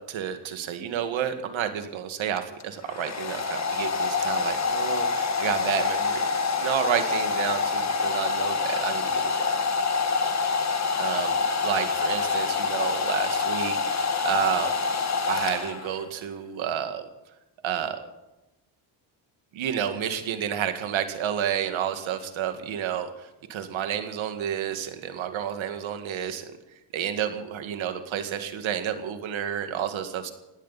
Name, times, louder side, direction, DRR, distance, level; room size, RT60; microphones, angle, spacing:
voice 1, 0.1-9.6 11.0-13.8 14.2-14.7 15.3-17.1 17.6-18.1 19.5-26.5 26.9-30.3, right 9 dB, 80° right, 8 dB, 2.1 m, -30 dB
Domestic sounds home sounds, 2.4-16.1, left 4 dB, 35° left, 1.8 m, -26 dB
19.0 x 17.0 x 4.2 m, 0.98 s
cardioid pair, 115°, 46 cm